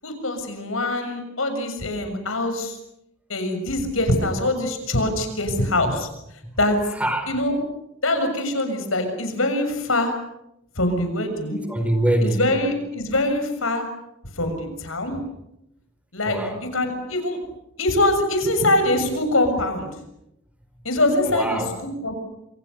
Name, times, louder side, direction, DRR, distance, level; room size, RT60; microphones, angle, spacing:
voice 1, 0.0-2.8 3.3-6.1 6.6-6.8 7.3-7.6 8.0-10.2 10.7-11.6 12.2-13.9 14.3-15.2 16.1-16.4 16.7-17.4 17.8-19.9 20.8-22.1, left 1 dB, 90° left, 7 dB, 6.8 m, -23 dB
voice 2, 6.9-7.4 11.7-12.5 16.2-16.7 21.2-21.8, right 1 dB, 5° right, 7 dB, 5.1 m, -24 dB
28.5 x 26.0 x 6.9 m, 0.85 s
head